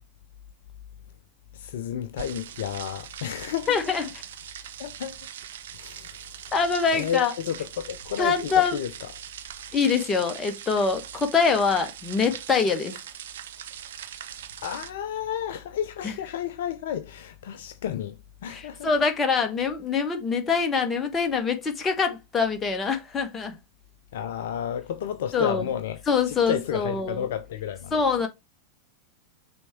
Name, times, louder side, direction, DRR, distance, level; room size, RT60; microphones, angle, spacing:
voice 1, 1.5-3.8 4.8-5.2 5.7-6.2 6.9-9.1 14.6-18.9 24.1-26.0 26.3-28.0, left 9 dB, 55° left, 0.6 m, -31 dB
sound 1, 2.2-14.9, right 10 dB, 60° right, 0.6 m, -41 dB
voice 2, 3.7-4.1 6.5-7.3 8.2-8.8 9.7-13.0 16.0-16.1 18.5-23.6 25.3-25.6 26.1-27.2 27.9-28.3, left 5 dB, 20° left, 1.3 m, -24 dB
6.1 x 3.5 x 4.5 m
figure-of-eight pair, 90°, 0 cm